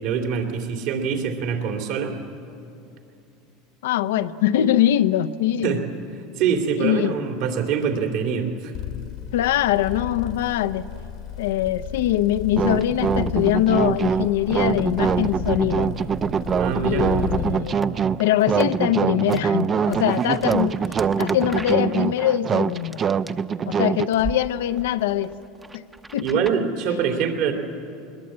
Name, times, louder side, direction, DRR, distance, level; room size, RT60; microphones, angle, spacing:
voice 1, 0.0-2.1 5.6-5.9 6.4-8.7 16.6-17.2 26.2-27.5, right 6 dB, 65° right, 4 dB, 2.7 m, -24 dB
voice 2, 3.8-5.8 6.8-7.2 9.3-10.8 11.4-15.9 16.8-17.8 18.2-20.8 21.2-23.0 23.7-25.3 25.7-25.8 26.1-26.4, left 12 dB, 85° left, 12 dB, 0.7 m, -22 dB
sound 1, 8.7-17.7, left 11 dB, 60° left, 1.3 m, -34 dB
sound 2, 12.6-24.1, right 6 dB, 30° right, 0.5 m, -23 dB
sound 3, 17.7-17.9 18.4-18.7 19.3-19.4 19.9-23.8 24.1-24.4 24.7-26.6, right 2 dB, 10° right, 0.8 m, -37 dB
20.5 x 20.5 x 8.7 m, 2.7 s
supercardioid pair, 115°, 0 cm